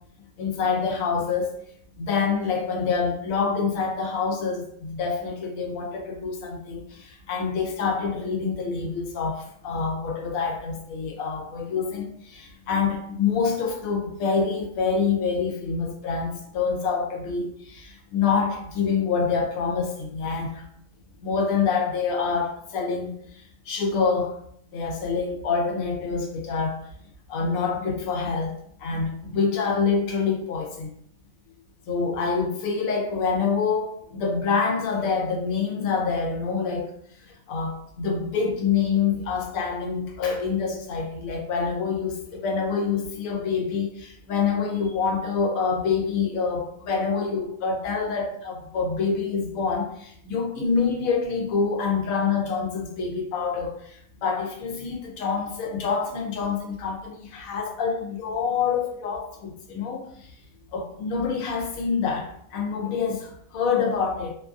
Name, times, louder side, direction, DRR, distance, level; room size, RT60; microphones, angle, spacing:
voice 1, 0.4-1.5 2.0-20.7 21.2-24.4 24.7-26.8 27.3-28.5 28.8-31.0 31.9-36.9 37.2-60.3 60.7-64.3, left 5 dB, 90° left, 1.0 m, -26 dB
2.6 x 2.3 x 2.4 m
omnidirectional pair, 1.4 m